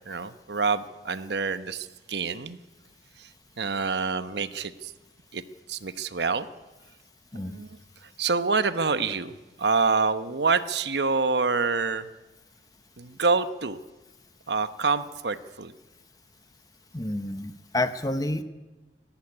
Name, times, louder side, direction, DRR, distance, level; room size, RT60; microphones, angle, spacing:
voice 1, 0.1-2.6 3.2-3.3 3.6-4.9 5.3-5.4 5.7-6.5 7.4-7.7 8.2-12.1 13.0-13.8 14.5-15.7, right 4 dB, 75° right, 12 dB, 1.0 m, -27 dB
voice 2, 16.9-18.4, left 1 dB, 20° left, 10 dB, 1.0 m, -29 dB
18.5 x 15.0 x 9.8 m, 1.2 s
head